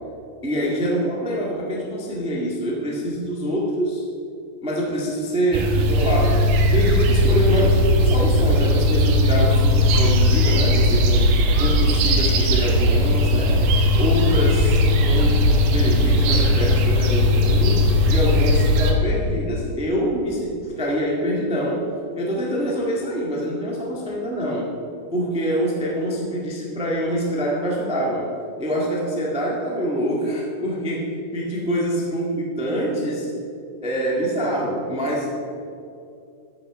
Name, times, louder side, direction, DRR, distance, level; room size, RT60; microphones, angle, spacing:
voice 1, 0.4-4.0 4.6-6.5 6.7-11.3 11.6-13.7 14.0-21.9 22.1-24.7 25.1-33.3 33.8-35.4, equal, 10° right, -4 dB, 0.3 m, -25 dB
sound 1, 5.5-18.9, left 1 dB, 85° right, 2.6 m, -18 dB
13.0 x 6.1 x 5.1 m, 2.6 s
omnidirectional pair, 3.7 m